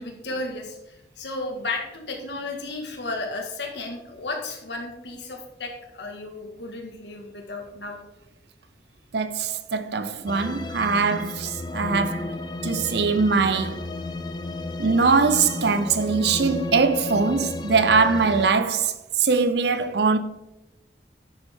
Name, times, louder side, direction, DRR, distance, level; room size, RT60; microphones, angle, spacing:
voice 1, 0.0-8.0, left 2 dB, 75° left, 1.9 m, -34 dB
voice 2, 9.1-12.4 12.6-13.9 14.8-20.2, right 4 dB, 65° right, 0.6 m, -22 dB
sound 1, 10.3-18.5, left 2 dB, 25° left, 0.4 m, -32 dB
10.0 x 7.0 x 3.7 m
head